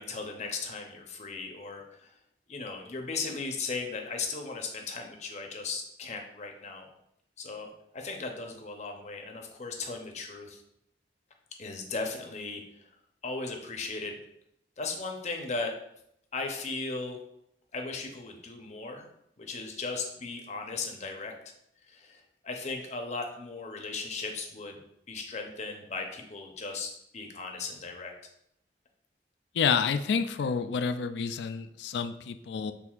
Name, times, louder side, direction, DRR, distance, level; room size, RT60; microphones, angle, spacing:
voice 1, 0.0-2.1 2.5-6.9 7.4-10.6 11.6-12.9 13.2-14.2 14.8-15.7 16.3-17.2 17.7-19.1 19.4-21.3 21.9-24.8 25.1-28.1, left 3 dB, 40° left, 3 dB, 0.7 m, -37 dB
voice 2, 29.5-32.7, left 6 dB, 75° left, 10 dB, 0.3 m, -29 dB
6.1 x 3.4 x 2.4 m, 0.76 s
head